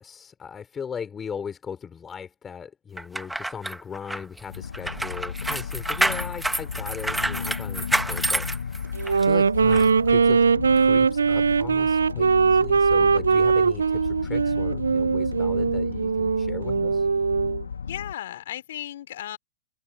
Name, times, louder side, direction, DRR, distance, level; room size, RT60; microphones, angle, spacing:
voice 1, 0.0-10.5 10.8-17.1, left 7 dB, 20° left, 4.3 m, -38 dB
sound 1, 3.0-9.2 9.7-9.9, right 1 dB, 5° right, 1.4 m, -28 dB
sound 2, 4.5-18.1, left 6 dB, 80° left, 2.4 m, -34 dB
Wind instrument woodwind instrument, 9.0-17.6, right 5 dB, 80° right, 0.6 m, -21 dB
voice 2, 17.9-19.4, left 12 dB, 65° left, 3.4 m, -35 dB
hypercardioid pair, 105°, 0 cm